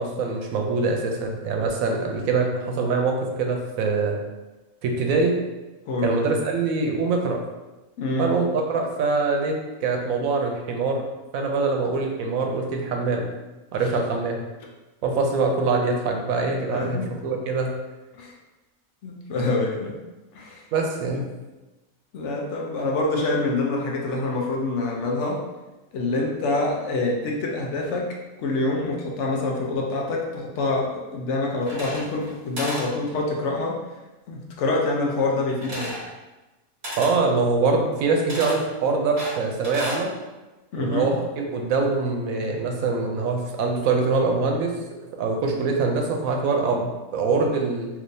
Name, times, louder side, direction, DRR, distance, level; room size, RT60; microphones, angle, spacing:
voice 1, 0.0-4.2 4.8-5.3 6.0-7.4 8.2-9.6 9.8-11.0 11.3-13.3 13.7-14.4 15.0-17.7 20.7-21.3 37.0-40.1 40.8-44.7 45.2-47.9, right 4 dB, 90° right, 2 dB, 1.0 m, -24 dB
voice 2, 5.9-6.2 8.0-8.4 13.8-13.9 16.7-17.1 18.1-18.3 19.0-20.0 20.3-20.6 22.1-25.4 25.9-33.8 34.3-35.9 40.7-41.1, left 2 dB, 65° left, -1 dB, 0.8 m, -26 dB
sound 1, 31.6-32.3 32.6-32.9 35.6-36.1 36.8-37.2 38.3-38.6 39.2-40.0, equal, 55° right, 1.4 m, -33 dB
3.4 x 2.8 x 2.6 m, 1.1 s
omnidirectional pair, 1.4 m